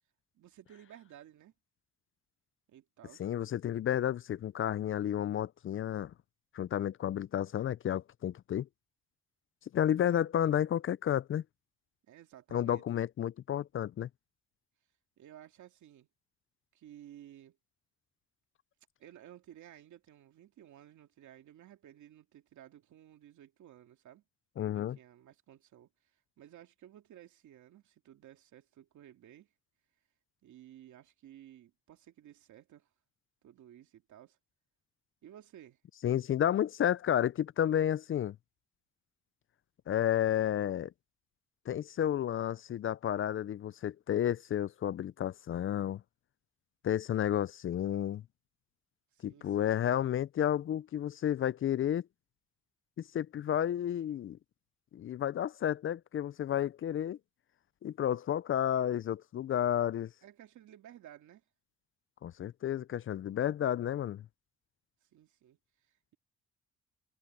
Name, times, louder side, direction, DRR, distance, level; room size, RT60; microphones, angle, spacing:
voice 1, 0.3-1.5 2.7-3.3 12.1-13.0 15.2-16.1 16.7-17.6 19.0-24.2 24.6-29.5 30.4-32.9 33.4-34.4 35.2-35.8 49.1-49.8 60.2-61.4 65.0-66.2, right 11 dB, 75° right, 2.4 m, -55 dB
voice 2, 3.2-6.1 6.5-8.7 9.7-11.4 12.5-14.1 24.6-25.0 36.0-38.4 39.9-40.9 41.7-46.0 46.8-48.2 49.2-52.0 53.1-54.4 54.9-57.2 57.8-60.1 62.2-64.2, left 10 dB, 45° left, 0.4 m, -31 dB
cardioid pair, 90°, 30 cm